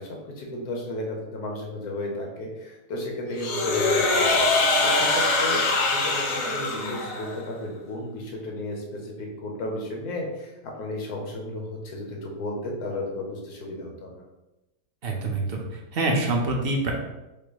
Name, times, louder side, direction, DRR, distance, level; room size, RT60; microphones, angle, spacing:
voice 1, 0.0-5.7 5.9-14.2, left 1 dB, 70° left, 0 dB, 1.4 m, -34 dB
sound 1, 3.4-7.4, left 2 dB, 85° left, 1.4 m, -23 dB
voice 2, 15.0-15.6 15.9-16.9, right 2 dB, 50° right, 0 dB, 0.8 m, -25 dB
5.1 x 2.1 x 4.7 m, 0.99 s
omnidirectional pair, 1.7 m